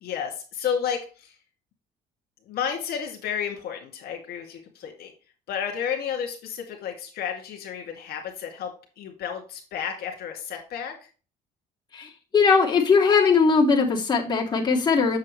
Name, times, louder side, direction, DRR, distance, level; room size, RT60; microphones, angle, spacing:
voice 1, 0.0-1.3 2.5-5.1 5.5-11.0, left 8 dB, 70° left, 2 dB, 2.2 m, -32 dB
voice 2, 11.9-15.2, left 5 dB, 25° left, -2 dB, 2.4 m, -20 dB
7.4 x 7.0 x 3.2 m, 0.35 s
cardioid pair, 110°, 17 cm